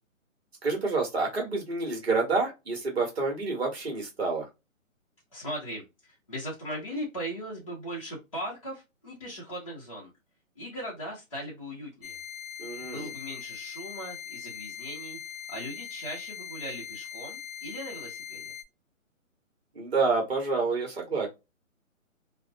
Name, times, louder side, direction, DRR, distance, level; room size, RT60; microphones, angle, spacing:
voice 1, 0.6-4.4 12.6-13.1 19.7-21.3, right 3 dB, 50° right, -1 dB, 1.1 m, -28 dB
voice 2, 5.3-10.1 10.5-12.2 12.9-15.2 15.5-18.5, equal, 25° left, -7 dB, 0.7 m, -39 dB
sound 1, 12.0-18.6, left 8 dB, 85° left, 0.7 m, -41 dB
2.5 x 2.1 x 2.6 m, 0.23 s
hypercardioid pair, 180°, 41 cm